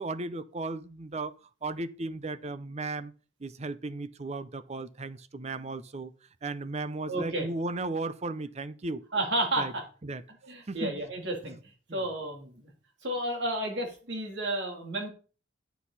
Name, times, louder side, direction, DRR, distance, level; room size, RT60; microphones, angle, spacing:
voice 1, 0.0-1.3 1.6-3.1 3.4-6.1 6.4-9.0 9.6-9.7 10.0-10.2 10.7-10.9 11.9-12.0, right 2 dB, 35° right, 0.6 m, -35 dB
voice 2, 7.1-7.5 9.1-9.8 10.4-11.6 11.9-12.6 13.0-15.1, right 1 dB, 60° right, 3.3 m, -31 dB
9.3 x 8.0 x 4.2 m
head